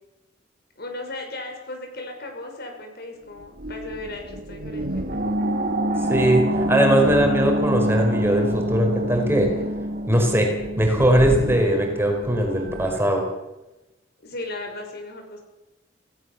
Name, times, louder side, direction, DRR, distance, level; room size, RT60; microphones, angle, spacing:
voice 1, 0.8-5.2 14.2-15.4, left 2 dB, 55° left, 3 dB, 6.0 m, -36 dB
sound 1, 3.4-13.0, right 1 dB, 50° right, 2.2 m, -27 dB
voice 2, 6.1-9.5 10.1-13.3, right 1 dB, 15° right, 2 dB, 4.8 m, -20 dB
27.5 x 17.5 x 7.1 m, 1.0 s
head